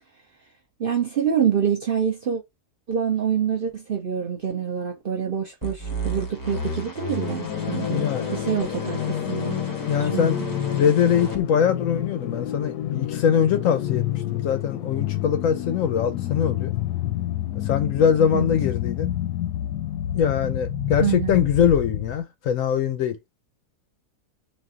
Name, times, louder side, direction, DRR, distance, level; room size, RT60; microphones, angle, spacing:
voice 1, 0.8-2.4 2.9-9.6 10.0-10.5 18.3-18.5 21.0-21.4, right 8 dB, 55° right, 0.6 m, -26 dB
sound 1, 5.6-11.4, left 1 dB, 20° left, 0.6 m, -32 dB
sound 2, 7.2-22.2, left 12 dB, 90° left, 1.2 m, -29 dB
voice 2, 7.9-8.3 9.9-10.4 10.7-16.7 17.6-19.1 20.1-23.2, left 8 dB, 65° left, 0.9 m, -22 dB
4.1 x 2.5 x 3.6 m
omnidirectional pair, 1.7 m